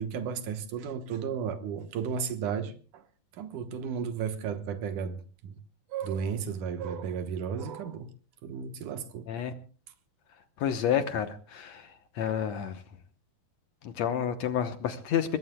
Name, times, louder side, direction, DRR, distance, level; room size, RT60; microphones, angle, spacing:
voice 1, 0.0-3.0 3.3-5.6 5.9-8.1 8.4-9.3, right 7 dB, 65° right, 2.4 m, -34 dB
voice 2, 10.6-11.3 11.5-11.8 12.2-12.7 13.8-15.4, left 9 dB, 70° left, 1.7 m, -29 dB
25.5 x 20.5 x 2.2 m
omnidirectional pair, 4.2 m